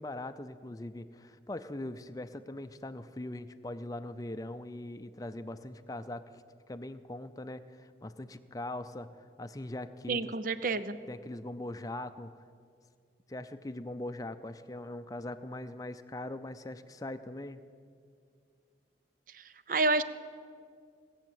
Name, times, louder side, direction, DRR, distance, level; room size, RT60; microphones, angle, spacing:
voice 1, 0.0-6.3 6.7-9.1 9.4-10.2 11.1-12.3 13.3-17.6, left 1 dB, 20° left, 10 dB, 0.5 m, -41 dB
voice 2, 10.1-11.0 19.7-20.0, right 3 dB, 50° right, 12 dB, 0.6 m, -28 dB
17.5 x 7.2 x 9.1 m, 2.2 s
head